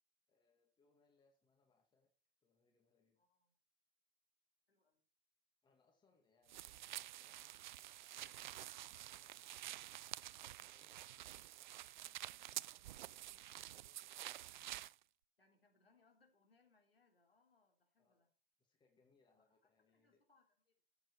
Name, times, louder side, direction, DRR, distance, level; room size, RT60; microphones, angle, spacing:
voice 1, 0.3-2.1 2.4-3.2 5.6-8.4 8.7-9.8 10.4-11.4 11.7-14.6 18.0-18.2 18.6-20.2, left 4 dB, 15° left, 2 dB, 2.4 m, -78 dB
voice 2, 3.2-3.5 4.7-5.0 15.4-18.3 19.3-20.8, left 3 dB, 80° left, 2 dB, 3.6 m, -76 dB
sound 1, 6.5-14.9, right 13 dB, 55° right, 0.4 m, -50 dB
14.0 x 8.0 x 4.7 m, 0.36 s
figure-of-eight pair, 100°, 29 cm